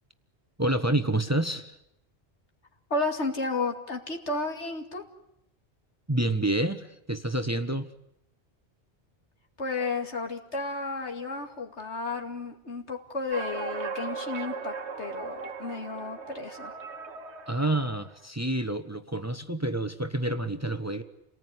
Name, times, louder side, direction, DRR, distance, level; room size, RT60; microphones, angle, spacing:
voice 1, 0.6-1.8 6.1-7.9 17.5-21.0, right 1 dB, 15° right, 9 dB, 1.1 m, -28 dB
voice 2, 2.9-5.0 9.6-16.7, left 3 dB, 85° left, 3 dB, 2.7 m, -32 dB
sound 1, 13.3-18.1, right 5 dB, 75° right, 1.5 m, -37 dB
28.0 x 19.0 x 9.7 m, 0.83 s
omnidirectional pair, 1.1 m